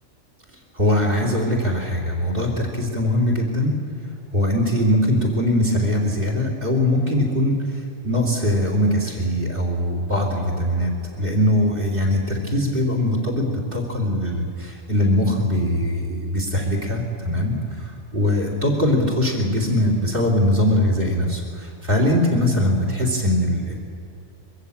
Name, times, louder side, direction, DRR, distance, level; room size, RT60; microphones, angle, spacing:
voice 1, 0.7-3.7 4.3-23.8, left 1 dB, 45° right, 2 dB, 3.6 m, -21 dB
22.5 x 14.5 x 8.6 m, 2.7 s
omnidirectional pair, 1.3 m